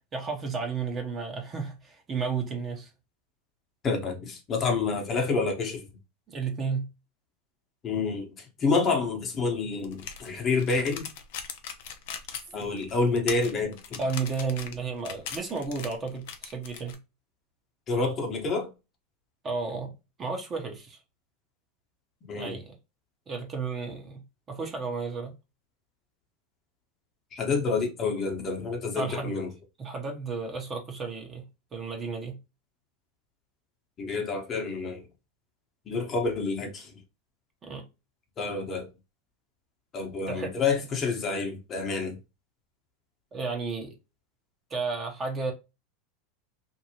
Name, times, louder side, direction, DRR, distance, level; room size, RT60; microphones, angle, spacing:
voice 1, 0.1-2.9 6.3-6.9 14.0-17.0 19.4-19.9 20.2-21.0 22.3-22.8 23.3-24.2 24.5-25.3 29.0-29.4 29.8-32.4 37.6-37.8 40.3-40.5 43.3-44.0 44.7-45.5, right 4 dB, 30° right, 0.9 m, -33 dB
voice 2, 3.8-5.8 7.8-11.1 12.5-14.0 17.9-18.7 22.3-22.6 27.3-29.5 34.0-35.0 35.9-36.9 38.4-38.9 39.9-42.2, left 4 dB, 35° left, 1.0 m, -28 dB
sound 1, 9.8-16.9, left 8 dB, 70° left, 0.6 m, -40 dB
2.6 x 2.6 x 2.9 m
hypercardioid pair, 105°, 0 cm